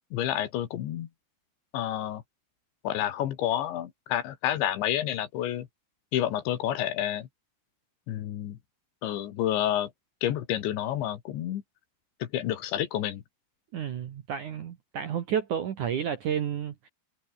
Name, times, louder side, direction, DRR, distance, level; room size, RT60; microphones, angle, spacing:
voice 1, 0.1-1.1 1.7-2.2 2.8-5.7 6.1-7.3 8.1-8.6 9.0-9.9 10.2-11.6 12.2-13.2, left 12 dB, 75° left, 4.0 m, -29 dB
voice 2, 13.7-16.9, right 8 dB, 60° right, 2.2 m, -31 dB
omnidirectional pair, 5.5 m